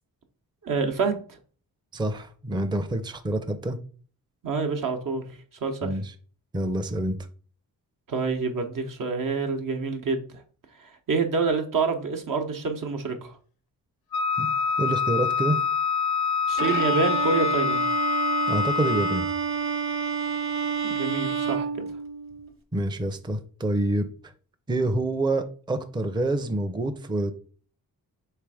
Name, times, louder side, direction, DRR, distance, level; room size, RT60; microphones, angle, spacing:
voice 1, 0.6-1.2 4.4-5.2 5.6-5.9 8.1-10.2 10.8-13.3 16.5-17.8 20.8-21.8, right 4 dB, 65° right, 1.0 m, -27 dB
voice 2, 1.9-3.8 5.8-6.1 6.5-7.2 14.4-14.5 14.8-15.6 18.5-19.3 22.7-24.1 24.7-27.3, right 1 dB, 15° right, 0.5 m, -27 dB
Wind instrument woodwind instrument, 14.1-19.3, left 6 dB, 90° left, 0.7 m, -26 dB
Bowed string instrument, 16.6-22.5, right 6 dB, 35° right, 1.1 m, -29 dB
3.3 x 3.3 x 4.8 m
cardioid pair, 70°, 35 cm